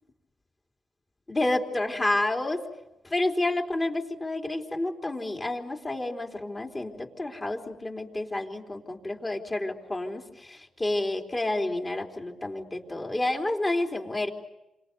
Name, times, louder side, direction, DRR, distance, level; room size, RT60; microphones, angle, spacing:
voice 1, 1.3-2.6 3.0-14.3, left 2 dB, 20° left, 3 dB, 3.6 m, -29 dB
29.0 x 25.5 x 8.0 m, 0.94 s
cardioid pair, 115°, 0 cm